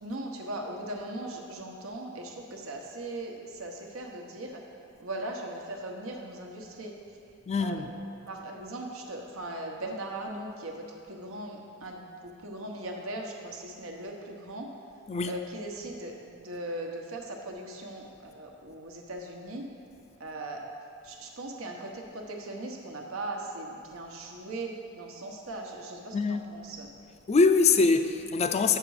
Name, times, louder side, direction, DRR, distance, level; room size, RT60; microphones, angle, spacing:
voice 1, 0.0-4.6 5.0-6.9 7.6-7.8 8.2-14.7 15.3-19.7 20.2-20.7 21.0-26.9, right 1 dB, 85° right, 1.1 m, -39 dB
voice 2, 7.5-7.9 15.1-15.3 26.1-26.5 27.3-28.8, left 4 dB, 30° left, 0.4 m, -23 dB
8.2 x 6.6 x 4.8 m
head